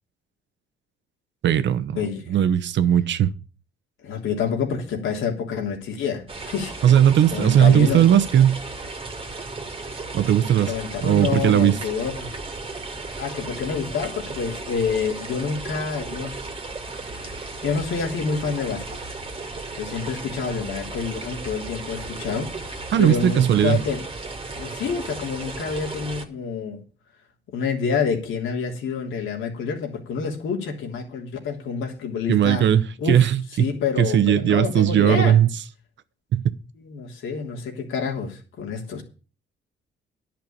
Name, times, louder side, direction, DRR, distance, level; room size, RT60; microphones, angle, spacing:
voice 1, 1.4-2.0 2.3-3.3 6.8-8.6 10.1-10.7 11.0-11.8 22.9-23.8 32.3-33.7 34.0-35.5 36.3-36.4, right 10 dB, 65° right, 1.0 m, -18 dB
voice 2, 1.9-2.5 4.0-6.8 7.3-8.0 10.7-12.3 13.2-16.4 17.6-19.0 19.8-24.0 24.6-26.8 27.5-32.7 33.0-35.4 36.8-39.0, left 6 dB, 80° left, 3.3 m, -28 dB
sound 1, 6.3-26.2, right 3 dB, 25° right, 2.2 m, -35 dB
11.0 x 5.9 x 8.7 m
cardioid pair, 90°, 20 cm